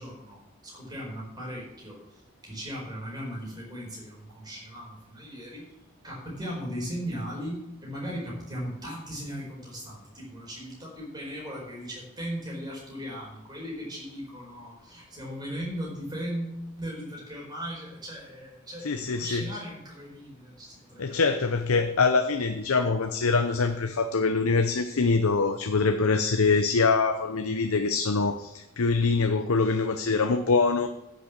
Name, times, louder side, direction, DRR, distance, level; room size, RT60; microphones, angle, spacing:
voice 1, 0.0-5.7 6.0-21.5, equal, 20° right, -3 dB, 4.6 m, -38 dB
voice 2, 18.8-19.4 21.0-30.9, left 4 dB, 75° left, 7 dB, 0.7 m, -24 dB
9.7 x 6.7 x 7.4 m, 0.88 s
head